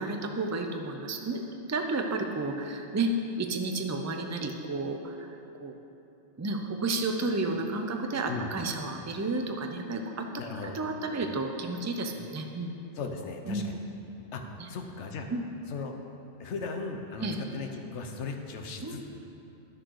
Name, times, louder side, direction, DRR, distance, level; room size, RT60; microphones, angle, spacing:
voice 1, 0.0-3.1 3.4-5.3 5.6-5.7 6.4-10.3 10.6-12.7 13.5-13.6 14.6-14.7 15.3-15.4 17.2-17.4 18.8-19.0, right 3 dB, 20° right, 4 dB, 0.4 m, -32 dB
voice 2, 10.4-10.8 12.9-13.8 14.3-15.3 15.7-15.9 16.4-19.1, left 4 dB, 75° left, 4 dB, 1.1 m, -37 dB
11.5 x 6.4 x 4.7 m, 2.8 s
omnidirectional pair, 1.2 m